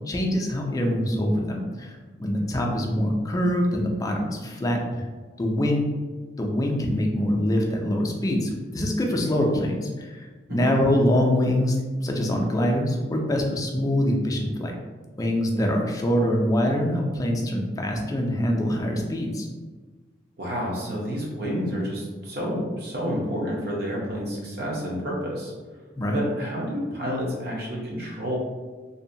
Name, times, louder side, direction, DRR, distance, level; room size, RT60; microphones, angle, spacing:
voice 1, 0.1-5.0 5.4-5.9 6.4-14.8 15.2-19.5 26.0-26.2, left 1 dB, 20° left, 1 dB, 0.3 m, -24 dB
voice 2, 10.5-10.8 20.4-25.5 26.1-28.4, equal, 60° right, -4 dB, 0.7 m, -29 dB
2.7 x 2.1 x 2.6 m, 1.4 s
head